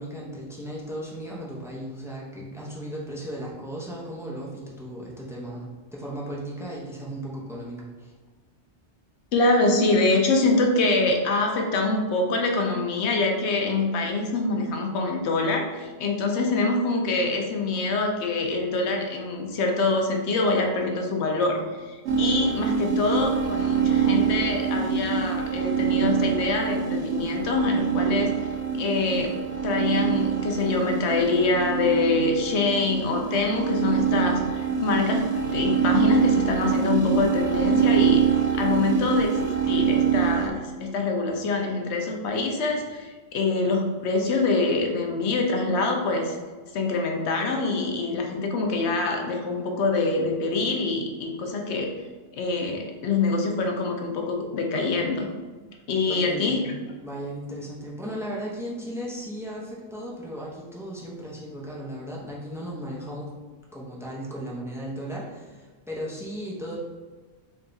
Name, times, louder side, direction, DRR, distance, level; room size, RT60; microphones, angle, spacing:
voice 1, 0.0-8.1 56.1-63.3 63.7-66.8, equal, 5° right, -4 dB, 0.5 m, -36 dB
voice 2, 9.3-28.5 28.8-38.2 38.5-46.4 46.7-51.9 52.3-55.3 55.9-56.6, left 3 dB, 80° left, 2 dB, 0.9 m, -25 dB
sound 1, 22.1-40.5, right 7 dB, 90° right, 0.9 m, -25 dB
3.5 x 2.3 x 3.9 m, 1.3 s
omnidirectional pair, 1.1 m